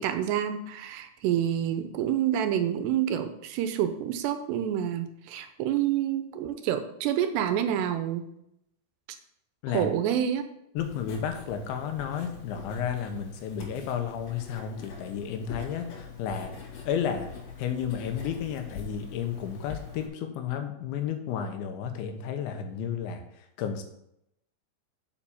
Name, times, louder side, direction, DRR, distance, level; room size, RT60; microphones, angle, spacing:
voice 1, 0.0-8.3 9.7-10.4, right 10 dB, 85° right, 8 dB, 2.8 m, -28 dB
voice 2, 10.8-16.5 16.9-17.3 17.6-23.8, left 8 dB, 90° left, 6 dB, 3.5 m, -32 dB
Writing, 10.8-20.1, left 6 dB, 65° left, 4.2 m, -43 dB
7.5 x 7.1 x 7.2 m, 0.79 s
omnidirectional pair, 5.1 m